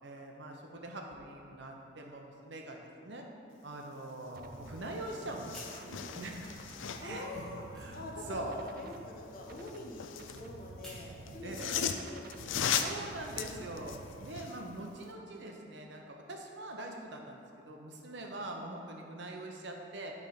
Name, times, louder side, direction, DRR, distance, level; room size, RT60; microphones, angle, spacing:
voice 1, 0.0-3.2 3.6-5.7 6.0-6.5 7.0-8.0 8.3-8.6 11.4-11.8 12.7-17.4 17.7-20.1, right 1 dB, 65° right, 2 dB, 0.8 m, -43 dB
sound 1, 4.3-14.5, right 3 dB, 50° right, 0.4 m, -50 dB
sound 2, 4.6-4.7 5.0-7.3 9.4-10.5 11.3-14.6 15.0-15.1, left 8 dB, 80° left, 0.4 m, -37 dB
sound 3, 5.4-6.3 6.6-11.2, equal, 5° left, 1.2 m, -55 dB
voice 2, 7.0-7.6 7.9-12.8, left 2 dB, 45° left, -1 dB, 0.9 m, -45 dB
9.3 x 3.6 x 5.0 m, 2.6 s
head